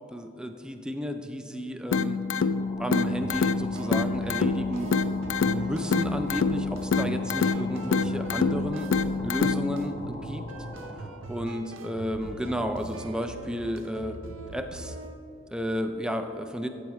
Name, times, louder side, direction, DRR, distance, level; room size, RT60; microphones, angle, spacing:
voice 1, 0.1-2.2 2.8-4.9 5.4-8.9 9.2-10.4 10.9-14.2 14.5-15.0 15.5-16.7, equal, 5° right, 7 dB, 0.4 m, -32 dB
sound 1, 1.9-9.9, left 4 dB, 85° left, 0.4 m, -27 dB
sound 2, 2.4-11.3, left 1 dB, 35° left, 0.7 m, -43 dB
sound 3, 3.2-15.2, right 2 dB, 90° right, 0.6 m, -42 dB
12.0 x 8.1 x 3.0 m, 2.6 s
head